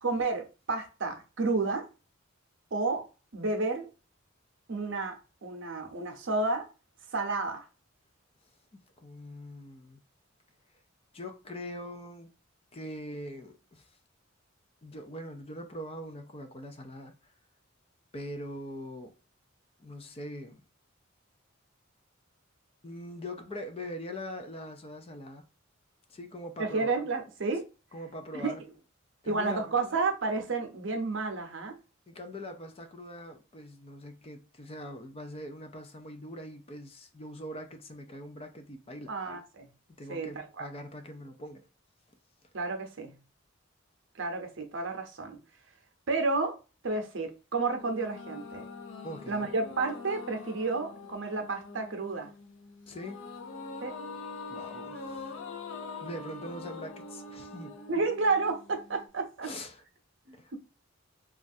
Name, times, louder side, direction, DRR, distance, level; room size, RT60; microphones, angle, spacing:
voice 1, 0.0-1.8 2.7-3.0 3.3-3.9 4.7-6.7 7.1-7.6 26.6-27.6 28.3-28.6 29.3-31.8 39.1-39.7 40.1-40.7 42.5-43.2 44.1-45.4 46.1-46.6 46.8-48.7 49.3-52.3 53.8-54.0 57.9-59.5 60.3-60.6, right 3 dB, 60° right, 0.7 m, -31 dB
voice 2, 9.0-10.0 11.1-12.3 12.7-13.9 14.8-17.1 18.1-19.1 19.8-20.6 22.8-25.4 26.1-26.9 27.9-28.6 29.2-29.7 32.1-39.1 40.0-41.7 49.0-49.5 52.9-53.3 54.5-55.3 56.0-57.8 59.4-59.8 60.3-60.6, left 1 dB, 30° left, 0.4 m, -42 dB
sound 1, 47.7-59.1, left 4 dB, 70° left, 0.7 m, -44 dB
3.1 x 2.4 x 2.6 m
head